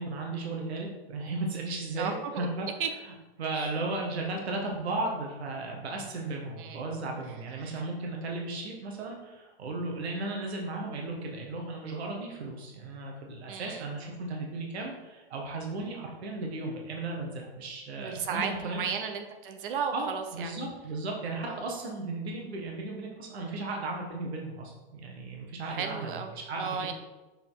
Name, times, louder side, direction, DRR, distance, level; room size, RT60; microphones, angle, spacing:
voice 1, 0.0-2.7 3.4-18.9 19.9-26.9, right 2 dB, 80° right, 0 dB, 1.6 m, -35 dB
voice 2, 2.0-2.5 2.8-2.9 3.5-3.7 6.6-6.8 7.5-7.8 13.5-13.9 17.9-20.7 21.5-21.6 25.6-26.9, right 6 dB, 55° right, 7 dB, 1.0 m, -35 dB
6.7 x 4.4 x 4.0 m, 1.1 s
hypercardioid pair, 155°, 31 cm